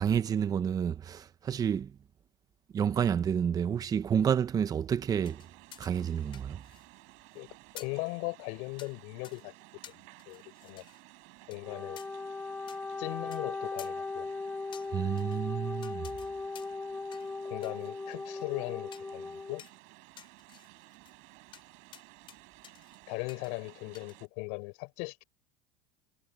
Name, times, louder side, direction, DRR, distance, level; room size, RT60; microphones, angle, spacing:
voice 1, 0.0-1.9 2.7-5.4 5.8-6.6 14.9-16.0, right 8 dB, 25° right, 1.0 m, -29 dB
sound 1, 5.2-7.0 7.3-7.4 7.8-8.0 8.8-8.9 9.2-9.4 9.8-11.0 11.5-11.6 12.0-12.1 12.7-12.8 13.3-13.4 13.8-13.9 14.7-15.4 15.8-16.3 16.5-16.8 17.1-17.3 17.6-18.5 18.9-19.1 19.6-19.7 20.2-21.1 21.5-21.6 21.9-22.4 22.6-23.0 23.3-23.5 23.9-24.2, left 10 dB, 40° left, 4.4 m, -52 dB
sound 2, 5.2-24.3, right 29 dB, 65° right, 6.2 m, -56 dB
voice 2, 7.7-9.5 9.9-10.8 11.5-12.0 13.0-14.3 17.4-19.6 23.1-25.2, left 32 dB, 65° left, 4.7 m, -38 dB
Wind instrument woodwind instrument, 11.5-19.6, left 3 dB, 10° left, 0.7 m, -38 dB
supercardioid pair, 115°, 14 cm